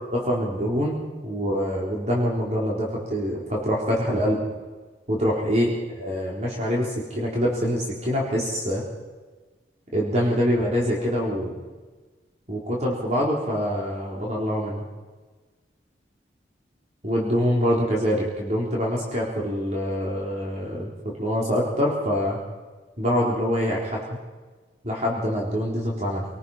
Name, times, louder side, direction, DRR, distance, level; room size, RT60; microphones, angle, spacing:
voice 1, 0.1-4.4 5.1-5.7 6.0-8.8 9.9-11.6 12.5-14.8 17.0-22.4 23.0-24.0 24.8-26.3, equal, 40° right, -3 dB, 3.9 m, -25 dB
26.5 x 20.0 x 5.7 m, 1.3 s
head